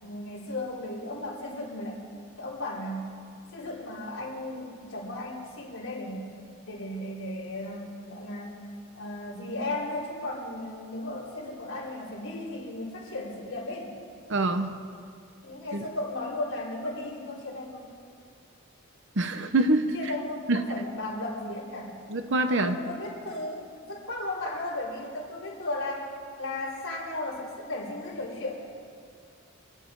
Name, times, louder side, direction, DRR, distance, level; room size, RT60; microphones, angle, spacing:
voice 1, 0.0-2.0 2.4-3.1 3.5-6.3 6.6-8.6 8.9-13.9 15.4-17.9 19.9-22.0 22.5-26.1 26.4-28.6, left 2 dB, 65° left, -5 dB, 4.3 m, -35 dB
voice 2, 14.3-14.7 15.7-15.8 19.2-19.9 20.5-20.6 22.1-22.8, right 2 dB, 55° right, 8 dB, 0.9 m, -25 dB
26.0 x 9.9 x 4.7 m, 2.3 s
head